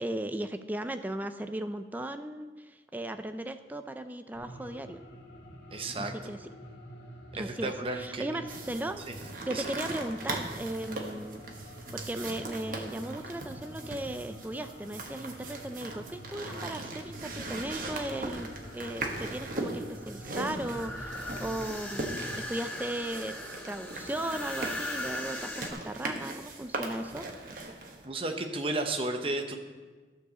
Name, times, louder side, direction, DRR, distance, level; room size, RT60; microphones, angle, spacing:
voice 1, 0.0-5.0 5.9-6.5 7.3-9.0 9.5-11.4 11.9-23.3 23.7-27.3, right 1 dB, 10° right, 8 dB, 0.3 m, -37 dB
sound 1, 4.3-22.4, right 1 dB, 85° left, 2.1 m, -47 dB
voice 2, 5.7-6.1 7.3-8.4 9.1-9.2 9.5-9.6 28.0-29.6, right 2 dB, 30° right, 5 dB, 0.8 m, -33 dB
sound 2, 8.5-28.0, right 2 dB, 50° right, 1.2 m, -40 dB
sound 3, 17.2-25.7, left 1 dB, 10° left, 0.9 m, -41 dB
12.5 x 4.7 x 6.9 m, 1.4 s
head